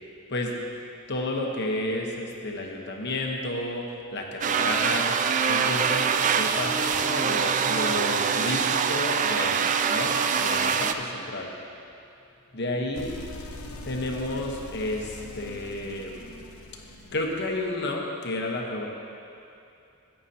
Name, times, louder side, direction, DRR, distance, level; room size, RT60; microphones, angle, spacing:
voice 1, 0.3-0.6 1.1-11.5 12.5-13.1 13.8-16.3 17.1-18.9, left 1 dB, 50° left, 0 dB, 1.1 m, -31 dB
sound 1, 4.4-10.9, right 6 dB, 35° right, 0.3 m, -24 dB
sound 2, 12.9-17.7, left 2 dB, 75° left, 0.8 m, -42 dB
14.5 x 9.1 x 2.8 m, 2.6 s
head